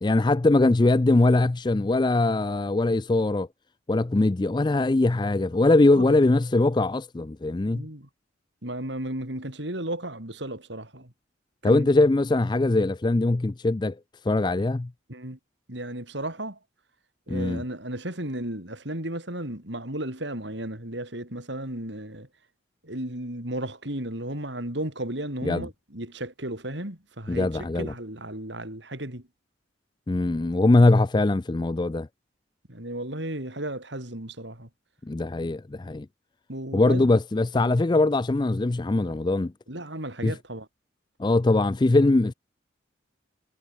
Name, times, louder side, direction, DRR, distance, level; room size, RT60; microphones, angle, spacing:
voice 1, 0.0-3.5 3.9-7.9 11.6-14.0 14.2-14.9 17.3-17.6 25.4-25.7 27.3-27.9 30.1-32.1 35.1-36.1 36.7-39.5 40.2-40.4 41.2-42.3, left 2 dB, 25° left, 0.4 m, -21 dB
voice 2, 5.6-6.1 7.7-8.1 8.6-11.1 11.6-11.9 15.1-15.4 15.7-16.6 17.3-22.3 22.8-29.3 32.7-34.7 36.5-37.1 39.7-40.7, right 1 dB, 65° right, 5.3 m, -34 dB
head